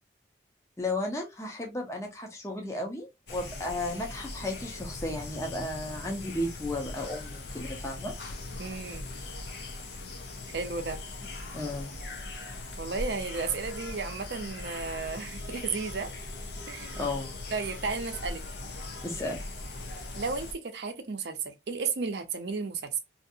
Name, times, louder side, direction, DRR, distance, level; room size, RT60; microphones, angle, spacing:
voice 1, 0.8-8.1 11.5-11.9 17.0-17.3 19.0-19.4, left 1 dB, 15° left, 0.6 m, -34 dB
sound 1, 3.3-20.5, left 2 dB, 65° left, 0.7 m, -40 dB
voice 2, 8.6-9.1 10.5-11.0 12.8-16.1 16.7-17.0 17.5-18.4 20.2-23.0, right 4 dB, 65° right, 0.6 m, -33 dB
2.7 x 2.5 x 2.6 m
head